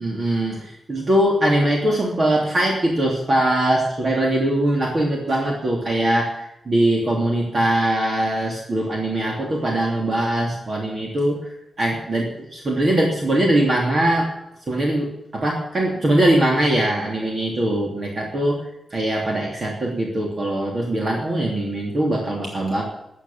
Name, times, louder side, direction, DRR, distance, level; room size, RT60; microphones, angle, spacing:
voice 1, 0.0-11.4 11.8-14.3 14.7-18.6 18.9-22.8, right 1 dB, 40° right, -1 dB, 3.0 m, -21 dB
14.0 x 8.5 x 8.8 m, 0.85 s
wide cardioid pair, 125°, 0 cm